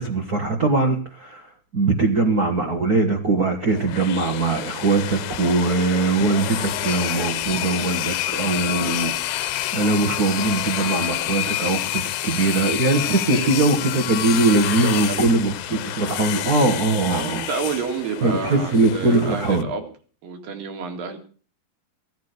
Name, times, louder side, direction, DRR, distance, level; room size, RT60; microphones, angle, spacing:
voice 1, 0.0-1.4 1.7-9.1 9.7-17.4 18.2-19.7, right 3 dB, 45° right, 3 dB, 1.3 m, -21 dB
sound 1, 3.7-19.6, left 14 dB, 85° left, 2.7 m, -28 dB
voice 2, 13.3-13.8 14.7-15.4 17.1-19.9 20.2-21.2, right 5 dB, 70° right, 4 dB, 3.8 m, -30 dB
16.0 x 10.5 x 6.7 m, 0.40 s
omnidirectional pair, 4.2 m